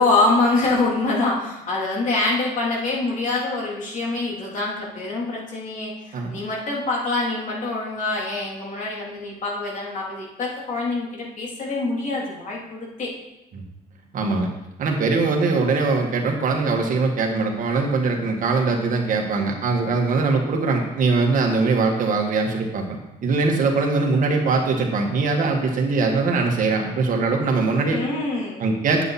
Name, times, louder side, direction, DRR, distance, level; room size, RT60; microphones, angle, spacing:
voice 1, 0.0-13.1 27.9-28.6, left 3 dB, 50° left, -3 dB, 3.5 m, -25 dB
voice 2, 14.1-14.5 14.8-28.0 28.6-29.0, right 3 dB, 50° right, 2 dB, 1.8 m, -21 dB
9.2 x 8.3 x 4.3 m, 0.92 s
cardioid pair, 110°, 17 cm